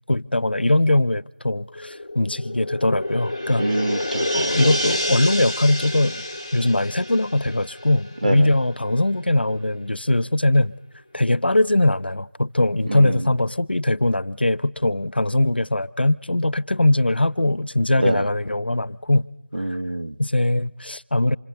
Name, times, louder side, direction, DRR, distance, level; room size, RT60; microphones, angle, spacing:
voice 1, 0.1-3.7 4.3-6.2 6.5-10.7 11.1-19.3 20.2-21.4, left 1 dB, 75° left, 0.8 m, -21 dB
sound 1, 1.8-8.7 9.1-9.2, left 1 dB, 20° left, 1.1 m, -28 dB
voice 2, 3.6-4.7 8.2-8.5 12.9-13.3 18.0-18.3 19.5-20.2, right 1 dB, 50° right, 1.0 m, -26 dB
26.0 x 21.5 x 6.9 m
figure-of-eight pair, 180°, 6 cm